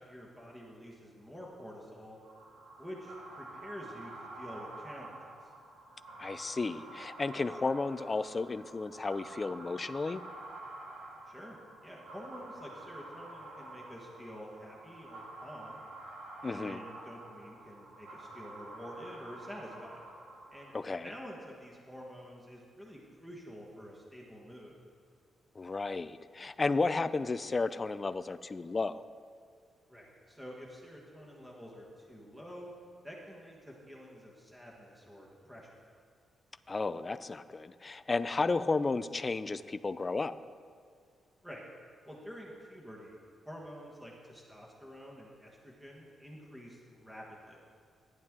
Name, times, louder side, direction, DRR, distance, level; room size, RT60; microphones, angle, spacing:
voice 1, 0.0-2.2 2.8-5.2 11.3-11.6 11.8-15.8 16.4-20.0 20.5-20.7 21.0-24.7 29.9-32.7 33.0-35.8 41.4-41.6 42.0-47.6, equal, 5° right, -3 dB, 1.4 m, -48 dB
sound 1, 2.2-21.1, right 2 dB, 85° right, 2.0 m, -49 dB
voice 2, 6.2-10.2 16.4-16.8 20.7-21.1 25.6-29.0 36.7-40.3, left 3 dB, 20° left, 13 dB, 0.3 m, -33 dB
14.5 x 10.5 x 3.7 m, 2.2 s
wide cardioid pair, 165°, 0 cm